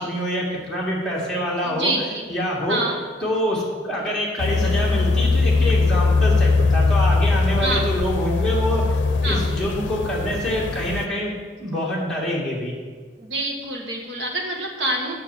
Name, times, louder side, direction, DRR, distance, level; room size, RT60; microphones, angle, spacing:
voice 1, 0.0-1.9 2.3-2.8 3.2-8.8 9.2-11.3 11.6-12.7, equal, 5° left, -6 dB, 1.9 m, -25 dB
voice 2, 1.6-2.3 2.7-3.0 7.6-7.8 9.2-9.4 13.2-15.1, right 2 dB, 75° right, 0 dB, 1.5 m, -26 dB
sound 1, 4.4-11.1, left 3 dB, 85° left, 0.5 m, -20 dB
6.5 x 6.4 x 7.2 m, 1.5 s
head